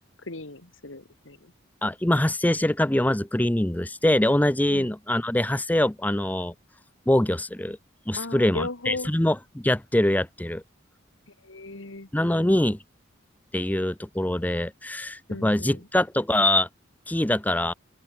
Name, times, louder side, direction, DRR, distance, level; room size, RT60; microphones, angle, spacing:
voice 1, 0.2-1.5 4.7-4.9 8.2-9.1 11.4-12.1 15.3-15.9, left 2 dB, 80° left, 2.4 m, -36 dB
voice 2, 1.8-6.5 7.1-7.8 8.1-10.6 12.1-12.8 13.5-16.7 17.1-17.7, left 1 dB, 10° left, 0.6 m, -24 dB
open air
head